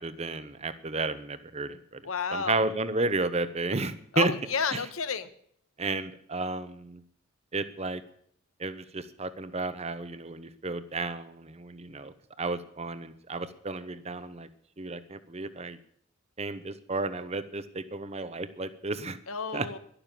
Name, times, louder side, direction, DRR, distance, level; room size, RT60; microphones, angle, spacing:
voice 1, 0.0-2.0 2.3-4.3 4.7-4.8 5.8-7.0 7.5-8.0 8.6-14.5 14.8-15.8 16.4-19.2 19.5-19.7, right 3 dB, 30° right, 13 dB, 0.8 m, -32 dB
voice 2, 2.0-2.7 4.1-5.3 19.3-19.8, left 5 dB, 80° left, 12 dB, 1.2 m, -31 dB
12.0 x 12.0 x 7.6 m, 0.67 s
head